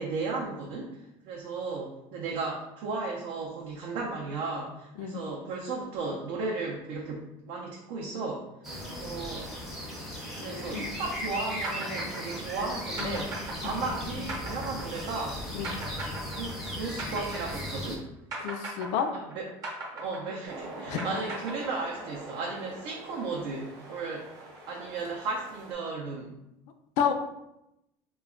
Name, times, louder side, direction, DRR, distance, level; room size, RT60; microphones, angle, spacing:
voice 1, 0.0-8.4 9.0-9.5 10.3-15.4 16.4-18.1 19.3-19.4 19.9-24.3 24.7-26.3, right 3 dB, 65° right, -3 dB, 0.5 m, -35 dB
sound 1, 8.6-18.0, equal, ahead, 0.5 m, -37 dB
voice 2, 10.4-10.9 13.0-13.2 13.6-14.2 15.5-15.7 18.4-19.1 20.9-21.1 27.0-27.1, left 8 dB, 75° left, 6 dB, 0.4 m, -31 dB
sound 2, 11.6-18.0 18.3-22.2, right 2 dB, 35° right, 0.8 m, -38 dB
sound 3, 20.4-25.7, right 2 dB, 85° right, 1.0 m, -44 dB
2.2 x 2.1 x 3.6 m, 0.87 s
cardioid pair, 160°, 11 cm